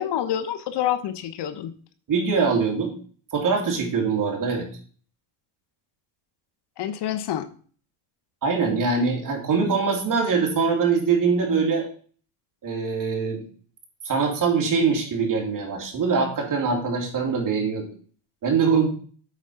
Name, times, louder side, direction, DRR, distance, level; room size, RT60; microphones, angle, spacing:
voice 1, 0.0-1.7 6.8-7.5, left 10 dB, 60° left, 11 dB, 1.0 m, -27 dB
voice 2, 2.1-2.9 3.3-4.7 8.4-11.9 12.6-13.4 14.0-17.9 18.4-18.9, right 5 dB, 40° right, 1 dB, 2.9 m, -23 dB
8.4 x 4.8 x 5.6 m, 0.43 s
cardioid pair, 120°, 47 cm